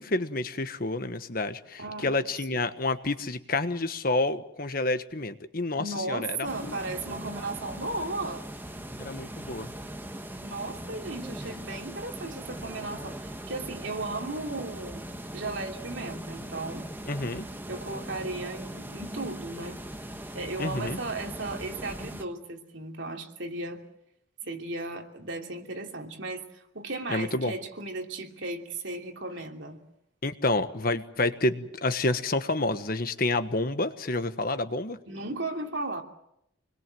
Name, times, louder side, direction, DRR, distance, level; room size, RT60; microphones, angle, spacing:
voice 1, 0.0-6.7 9.0-9.7 17.1-17.5 20.6-21.0 27.1-27.5 30.2-35.0, left 2 dB, 45° left, 10 dB, 1.3 m, -29 dB
voice 2, 1.8-2.2 2.5-2.6 5.8-8.5 10.4-15.0 15.3-16.9 17.7-19.8 20.3-23.8 24.4-29.8 35.1-36.0, right 2 dB, 65° right, 3 dB, 3.0 m, -35 dB
sound 1, 6.4-22.2, right 1 dB, 10° right, 1.3 m, -40 dB
27.0 x 21.5 x 7.7 m, 0.81 s
head